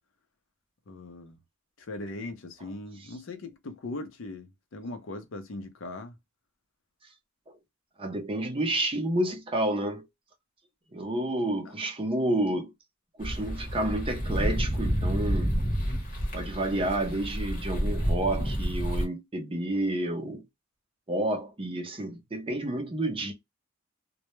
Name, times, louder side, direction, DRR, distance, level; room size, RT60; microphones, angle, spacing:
voice 1, 0.9-1.4 1.8-6.2 11.6-11.7, left 2 dB, 70° left, 0.5 m, -39 dB
voice 2, 8.0-10.1 10.9-12.7 13.2-15.5 16.3-20.4 21.1-23.3, right 1 dB, 25° right, 0.5 m, -30 dB
sound 1, 13.2-19.0, equal, 40° left, 0.8 m, -29 dB
2.2 x 2.0 x 2.9 m
head